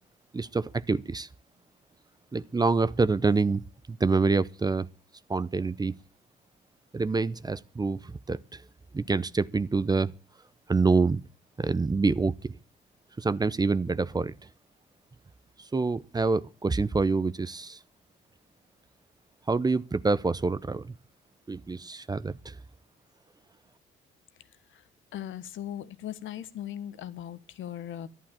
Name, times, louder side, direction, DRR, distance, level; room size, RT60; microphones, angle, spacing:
voice 1, 0.3-1.3 2.3-4.9 5.3-5.9 6.9-8.4 8.9-10.1 10.7-11.2 11.6-12.5 13.2-14.3 15.7-17.8 19.5-20.9 21.5-22.6, right 4 dB, 20° right, 0.7 m, -26 dB
voice 2, 25.1-28.1, left 11 dB, 75° left, 1.3 m, -38 dB
11.5 x 11.0 x 7.4 m
cardioid pair, 90°, 20 cm